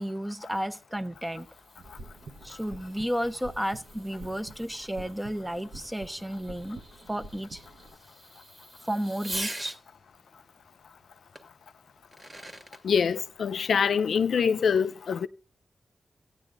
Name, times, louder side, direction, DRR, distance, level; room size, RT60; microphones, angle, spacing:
voice 1, 0.0-1.5 2.4-6.8 7.1-7.6 8.9-9.8, equal, 10° right, 0.8 m, -32 dB
Fireworks, 1.1-9.8 11.4-11.5 12.0-12.8, right 1 dB, 30° right, 1.9 m, -44 dB
sound 1, 1.8-8.0, right 2 dB, 75° right, 1.1 m, -48 dB
voice 2, 12.8-15.3, left 6 dB, 85° left, 0.4 m, -25 dB
16.0 x 9.5 x 2.4 m
cardioid pair, 60°, 0 cm